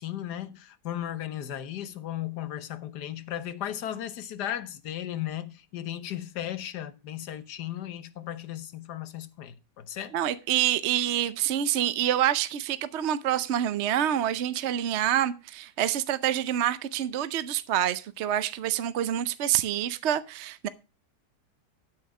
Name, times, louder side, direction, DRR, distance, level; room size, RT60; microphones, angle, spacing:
voice 1, 0.0-10.1, left 11 dB, 75° left, 1.5 m, -36 dB
voice 2, 10.1-20.7, right 11 dB, 60° right, 0.7 m, -27 dB
9.3 x 8.4 x 4.8 m
omnidirectional pair, 1.8 m